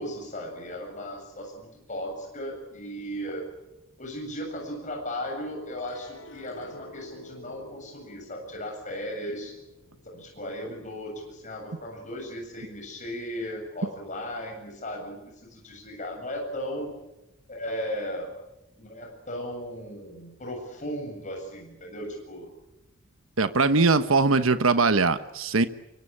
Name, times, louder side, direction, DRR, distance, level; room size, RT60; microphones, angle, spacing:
voice 1, 0.0-3.5 4.0-9.5 10.0-16.9 17.5-18.3 18.8-22.5, equal, 35° left, 1 dB, 7.8 m, -36 dB
sound 1, 5.8-12.2 12.7-13.3, left 2 dB, 70° left, 5.7 m, -50 dB
voice 2, 23.4-25.6, right 3 dB, 80° right, 11 dB, 1.2 m, -21 dB
24.5 x 24.0 x 9.0 m, 0.91 s
head